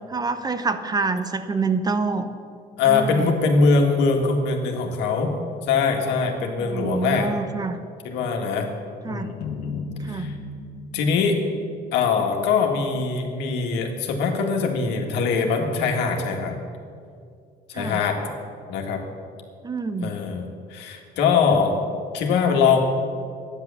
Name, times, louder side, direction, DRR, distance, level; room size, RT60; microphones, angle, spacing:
voice 1, 0.1-2.3 2.9-3.3 6.6-7.8 9.0-9.3 10.0-10.3 17.7-18.0 19.6-20.2, right 4 dB, 25° right, 10 dB, 0.8 m, -26 dB
voice 2, 2.8-5.3 5.6-7.3 8.0-8.7 9.0-10.3 10.9-11.4 11.9-16.6 17.7-18.2 18.7-19.0 20.0-21.7 22.1-22.8, left 5 dB, 90° left, 2 dB, 1.9 m, -22 dB
sound 1, 9.4-12.6, left 4 dB, 70° left, 1.4 m, -36 dB
12.0 x 9.9 x 7.2 m, 2.4 s
cardioid pair, 110°, 17 cm